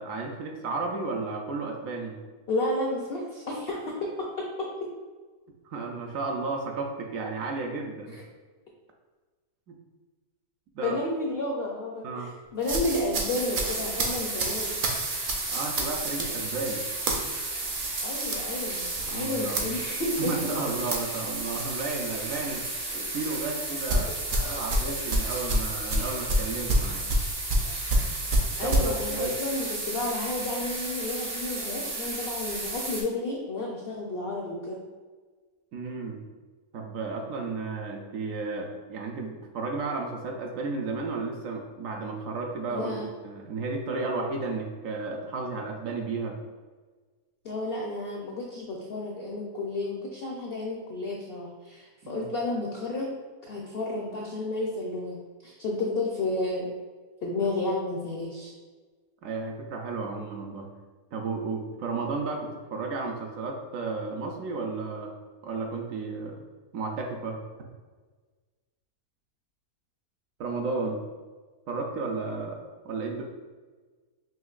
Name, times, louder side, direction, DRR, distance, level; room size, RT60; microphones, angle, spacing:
voice 1, 0.0-2.2 5.6-8.2 9.7-9.8 10.7-11.0 12.0-12.3 15.5-16.8 19.1-19.8 20.2-22.6 22.9-24.1 24.5-27.1 28.6-29.4 35.7-36.2 36.7-46.4 52.0-52.3 59.2-60.7 61.1-65.1 65.4-66.4 66.7-67.4 70.4-71.0 71.7-72.6 72.8-73.2, right 3 dB, 70° right, 1 dB, 0.9 m, -33 dB
voice 2, 2.5-4.1 8.1-8.2 10.8-14.9 18.0-18.9 19.1-20.5 23.9-24.0 24.3-24.6 28.6-34.8 42.7-43.1 47.4-53.1 53.5-55.2 55.4-56.7 57.2-58.5, left 2 dB, 70° left, -2 dB, 0.5 m, -31 dB
sound 1, 12.6-22.2 22.5-22.8 23.9-28.9, right 1 dB, 90° right, 0.4 m, -29 dB
sound 2, 13.3-33.0, right 2 dB, 45° right, 0.6 m, -34 dB
5.8 x 2.8 x 2.4 m, 1.4 s
omnidirectional pair, 1.6 m